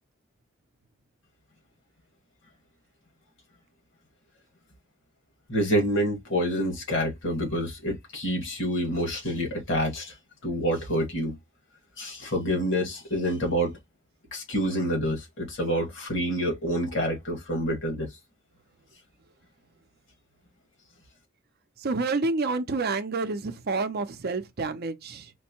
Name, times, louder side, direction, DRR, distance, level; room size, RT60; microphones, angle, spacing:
voice 1, 5.5-10.2 10.4-11.4 12.0-13.8 14.3-18.1, equal, 65° left, 1.8 m, -27 dB
voice 2, 21.8-25.3, right 3 dB, 50° right, 0.6 m, -29 dB
4.5 x 2.1 x 2.9 m
head